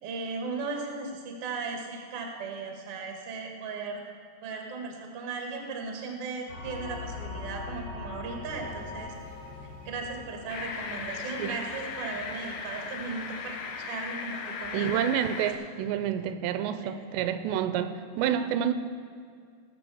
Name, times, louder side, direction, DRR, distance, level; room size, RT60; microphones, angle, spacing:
voice 1, 0.0-4.0 4.4-9.1 9.8-15.0 16.8-17.0, right 4 dB, 50° right, 2 dB, 1.8 m, -37 dB
sound 1, 6.5-14.5, left 3 dB, 45° left, 2.8 m, -43 dB
sound 2, 10.5-15.5, left 5 dB, 75° left, 2.9 m, -37 dB
voice 2, 14.7-18.7, right 10 dB, 85° right, 11 dB, 2.8 m, -29 dB
19.0 x 7.7 x 6.9 m, 2.1 s
omnidirectional pair, 5.0 m